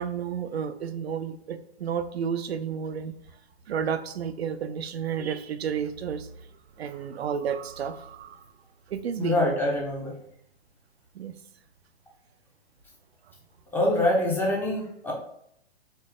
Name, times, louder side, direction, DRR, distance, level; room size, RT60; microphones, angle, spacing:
voice 1, 0.0-3.1 3.7-6.3 6.8-8.4 8.9-9.5 11.1-11.3, right 7 dB, 80° right, 11 dB, 0.5 m, -31 dB
voice 2, 9.2-10.1 13.7-15.1, left 1 dB, 5° left, -2 dB, 0.7 m, -25 dB
4.3 x 2.6 x 3.2 m, 0.70 s
hypercardioid pair, 130°, 31 cm